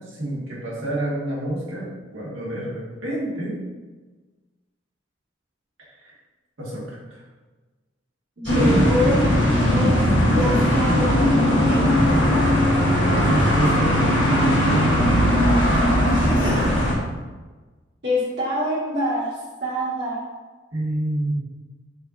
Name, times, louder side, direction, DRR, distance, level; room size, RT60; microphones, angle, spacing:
voice 1, 0.1-3.6 6.0-6.1 6.6-7.2 12.9-15.3 16.2-16.8 20.7-21.4, right 1 dB, 90° right, -5 dB, 1.4 m, -28 dB
voice 2, 8.4-9.2 9.7-10.0 10.3-12.2 16.4-16.6 18.0-20.3, left 1 dB, 65° right, -9 dB, 1.5 m, -26 dB
sound 1, 8.5-16.9, equal, 70° left, 1.4 m, -18 dB
4.9 x 3.8 x 2.4 m, 1.3 s
head